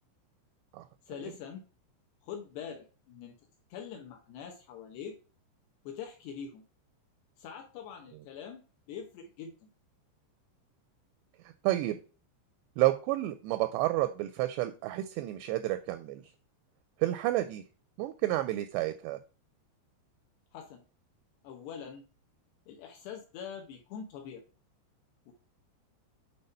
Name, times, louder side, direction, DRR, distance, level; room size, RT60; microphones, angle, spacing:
voice 1, 1.1-1.6 2.3-3.3 3.7-5.1 5.8-6.6 7.4-8.6 8.9-9.7 20.5-20.8 21.4-22.0 22.7-24.4 25.3-25.4, left 7 dB, 75° left, 2 dB, 2.9 m, -43 dB
voice 2, 11.6-12.0 12.8-16.2 17.0-17.6 18.0-19.2, right 16 dB, 85° right, 11 dB, 2.5 m, -30 dB
8.1 x 4.2 x 5.4 m, 0.36 s
omnidirectional pair, 5.4 m